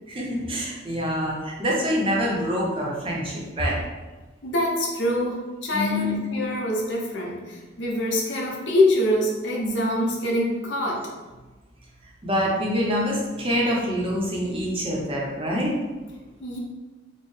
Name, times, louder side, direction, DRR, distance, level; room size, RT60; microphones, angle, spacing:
voice 1, 0.1-3.8 5.7-6.2 12.2-15.8, equal, 25° right, -3 dB, 0.6 m, -25 dB
voice 2, 4.4-11.1 16.4-16.6, left 1 dB, 65° left, -2 dB, 0.7 m, -25 dB
4.4 x 2.0 x 3.1 m, 1.2 s
head